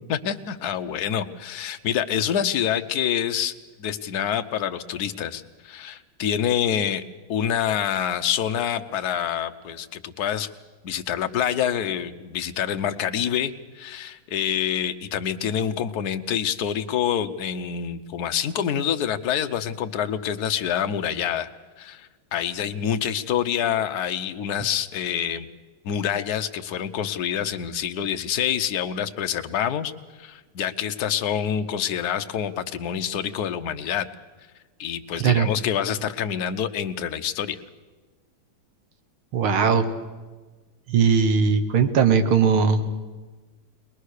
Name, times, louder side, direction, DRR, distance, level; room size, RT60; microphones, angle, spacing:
voice 1, 0.1-3.5 3.8-7.0 7.3-10.5 10.8-21.5 21.8-25.5 25.8-29.9 30.2-34.1 34.8-37.6, left 9 dB, 60° left, 8 dB, 1.1 m, -26 dB
voice 2, 39.3-39.9 40.9-42.9, right 6 dB, 80° right, 9 dB, 2.1 m, -19 dB
21.5 x 21.0 x 6.5 m, 1.3 s
omnidirectional pair, 2.3 m